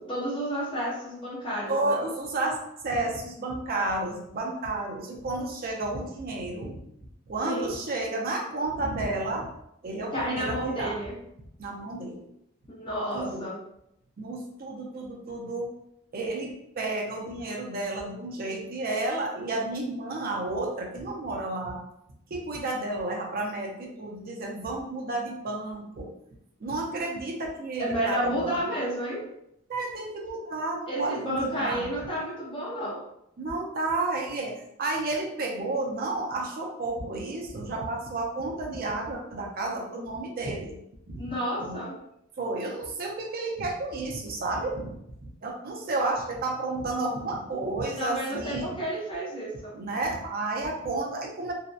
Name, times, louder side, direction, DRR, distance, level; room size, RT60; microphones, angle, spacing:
voice 1, 0.0-2.1 7.4-7.8 10.1-11.2 12.7-13.6 27.8-29.2 30.9-33.0 41.2-41.9 48.0-49.8, right 1 dB, 25° left, -7 dB, 0.7 m, -31 dB
voice 2, 1.7-2.6 2.8-6.8 7.3-9.5 9.8-11.0 11.6-12.3 13.1-13.5 14.2-15.7 16.1-21.8 22.3-26.1 26.6-28.6 29.7-31.9 33.4-40.8 41.1-41.2 41.6-41.8 42.4-48.7 49.7-51.5, right 2 dB, 45° right, 1 dB, 0.5 m, -31 dB
2.6 x 2.0 x 2.3 m, 0.78 s
head